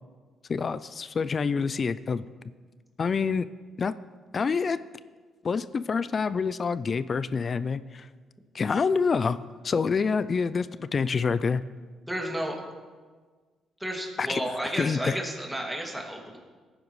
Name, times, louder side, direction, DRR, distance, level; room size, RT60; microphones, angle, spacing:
voice 1, 0.5-2.3 3.0-3.5 3.8-3.9 4.3-4.8 5.4-8.1 8.5-9.4 9.6-11.6 14.2-15.2, left 5 dB, 40° left, 15 dB, 0.4 m, -27 dB
voice 2, 12.1-12.6 13.8-16.4, right 1 dB, 5° right, -1 dB, 2.3 m, -32 dB
17.5 x 10.0 x 3.2 m, 1.5 s
cardioid pair, 90°, 0 cm